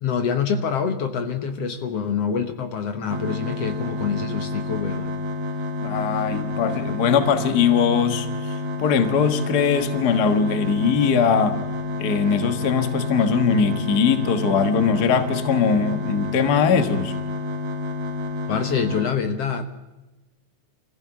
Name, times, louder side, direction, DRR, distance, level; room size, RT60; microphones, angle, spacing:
voice 1, 0.0-5.1 18.5-19.6, left 6 dB, 60° left, 7 dB, 2.0 m, -26 dB
sound 1, 3.1-19.1, left 2 dB, 60° right, 3.2 m, -29 dB
voice 2, 5.8-8.3 8.8-11.6 12.0-17.1, left 6 dB, 45° left, 8 dB, 1.5 m, -21 dB
25.0 x 15.5 x 7.3 m, 1.1 s
omnidirectional pair, 3.5 m